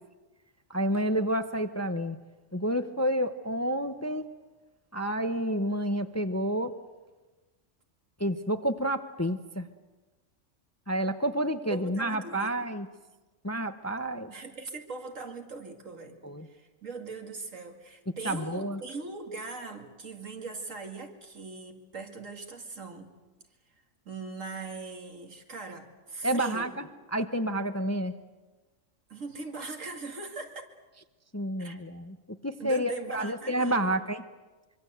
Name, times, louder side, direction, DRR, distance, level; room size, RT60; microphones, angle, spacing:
voice 1, 0.7-2.2 2.5-4.3 4.9-6.7 8.2-9.7 10.9-12.9 13.4-14.3 16.2-16.5 18.2-18.8 26.2-26.8 27.1-28.1 31.3-32.2 32.4-34.2, right 1 dB, 15° left, 9 dB, 0.7 m, -29 dB
voice 2, 11.6-12.7 14.3-23.1 24.1-26.7 29.1-30.6 31.6-31.8 32.6-34.0, right 3 dB, 75° right, 4 dB, 2.7 m, -40 dB
25.0 x 24.5 x 8.0 m, 1.2 s
omnidirectional pair, 1.3 m